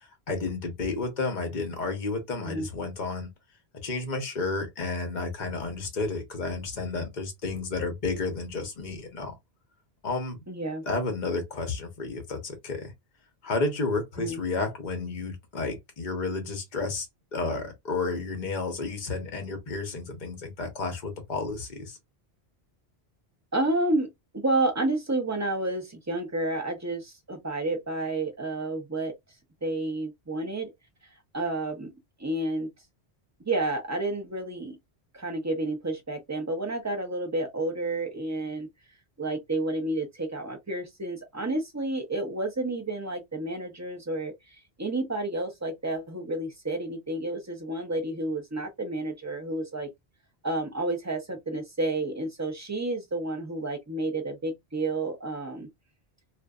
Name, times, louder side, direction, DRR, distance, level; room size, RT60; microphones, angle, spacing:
voice 1, 0.3-3.3 3.8-9.4 10.0-10.4 10.8-12.9 13.4-17.1 17.3-22.0, left 3 dB, 50° left, 0.9 m, -31 dB
voice 2, 10.5-10.8 14.2-14.4 23.5-29.1 29.6-30.7 31.3-31.9 32.2-32.7 33.4-34.8 35.1-38.7 39.2-49.9 50.4-55.7, right 2 dB, 20° right, 0.6 m, -30 dB
2.5 x 2.5 x 2.3 m
omnidirectional pair, 1.1 m